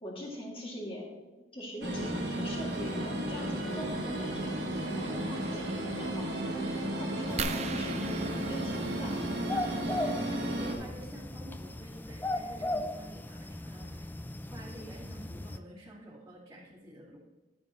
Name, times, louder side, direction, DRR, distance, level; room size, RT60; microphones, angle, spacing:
voice 1, 0.0-1.2 1.5-4.5 4.9-6.6 7.0-9.2, equal, 30° left, -2 dB, 2.4 m, -42 dB
sound 1, 1.8-10.7, right 1 dB, 75° right, 1.7 m, -34 dB
sound 2, 7.3-15.6, left 1 dB, 10° left, 0.3 m, -38 dB
sound 3, 7.4-9.8 11.4-11.5 12.1-12.2 12.5-12.7, right 5 dB, 40° right, 0.5 m, -39 dB
voice 2, 10.0-14.1 14.4-17.2, equal, 20° right, -8 dB, 2.1 m, -48 dB
11.5 x 8.9 x 3.0 m, 1.1 s
head